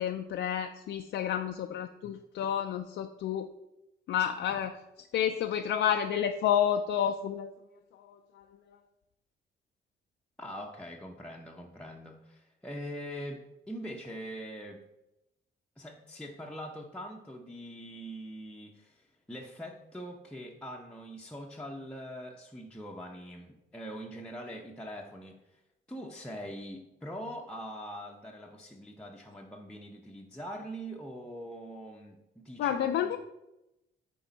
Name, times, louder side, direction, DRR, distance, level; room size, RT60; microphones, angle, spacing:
voice 1, 0.0-3.5 4.1-7.5 7.9-8.4 32.6-33.2, left 9 dB, 70° left, 5 dB, 0.4 m, -30 dB
voice 2, 10.4-14.8 15.8-25.6 25.9-33.1, equal, 5° left, -1 dB, 0.6 m, -43 dB
9.4 x 3.5 x 4.0 m, 0.93 s
cardioid pair, 90°, 20 cm